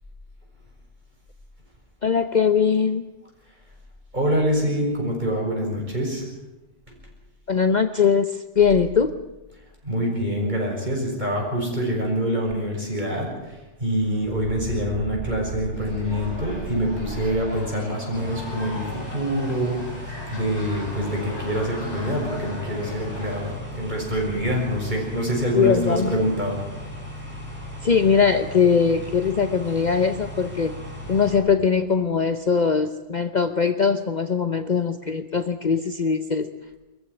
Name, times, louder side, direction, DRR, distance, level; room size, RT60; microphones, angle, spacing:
voice 1, 2.0-3.1 7.5-8.3 8.6-9.1 25.5-26.3 27.8-30.7 31.1-36.5, left 6 dB, 40° left, 10 dB, 0.9 m, -21 dB
voice 2, 4.1-6.3 9.8-26.6, equal, 40° right, -1 dB, 6.7 m, -25 dB
sound 1, 12.5-12.6 13.0-13.5 13.8-17.8, right 3 dB, 75° right, 1.5 m, -36 dB
sound 2, 15.7-23.5, left 1 dB, 75° left, 7.1 m, -39 dB
sound 3, 18.1-31.4, left 1 dB, 10° right, 6.5 m, -37 dB
23.0 x 14.5 x 9.8 m, 1.0 s
omnidirectional pair, 1.2 m